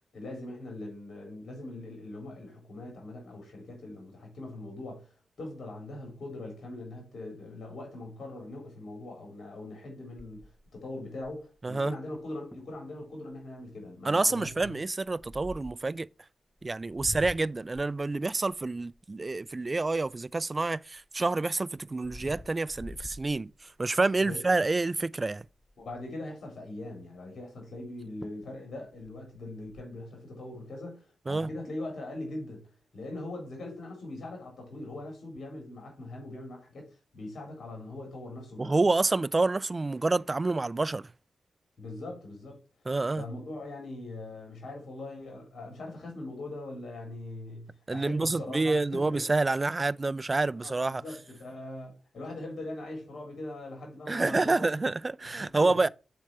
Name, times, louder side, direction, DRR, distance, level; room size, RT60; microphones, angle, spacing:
voice 1, 0.1-10.4 10.7-14.7 24.2-24.4 25.8-38.8 41.8-42.6 43.2-49.2 50.6-54.7 55.6-55.7, left 2 dB, 70° left, 3.8 m, -41 dB
sound 1, 10.2-11.6 12.2-12.3 12.5-12.8 13.3-13.6 14.4-15.9 16.6-20.5 21.0-24.0 24.5-24.7 25.0-25.1 25.4-26.1 27.8-27.9 28.2-28.6 28.9-29.8, left 1 dB, 10° left, 0.9 m, -47 dB
voice 2, 11.6-12.0 14.0-16.1 16.6-25.5 31.3-31.5 38.6-41.1 42.9-43.2 47.9-51.0 54.1-55.9, right 3 dB, 30° right, 0.3 m, -28 dB
7.6 x 4.4 x 4.7 m
cardioid pair, 75°, 0 cm